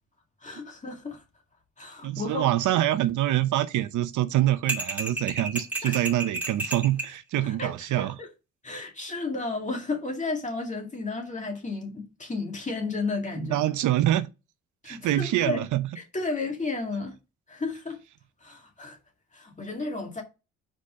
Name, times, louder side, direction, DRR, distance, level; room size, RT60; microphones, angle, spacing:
voice 1, 0.4-1.2 1.8-2.5 5.8-6.1 7.4-8.3 8.6-13.6 14.8-15.6 16.0-17.1 17.5-18.0 18.4-19.0 19.3-20.2, left 3 dB, 25° left, 2.1 m, -33 dB
voice 2, 2.0-8.2 13.4-14.3 14.8-15.8, right 13 dB, 75° right, 0.7 m, -25 dB
sound 1, 4.7-7.1, right 2 dB, 5° right, 2.4 m, -31 dB
5.1 x 4.2 x 5.1 m
cardioid pair, 90°, 30 cm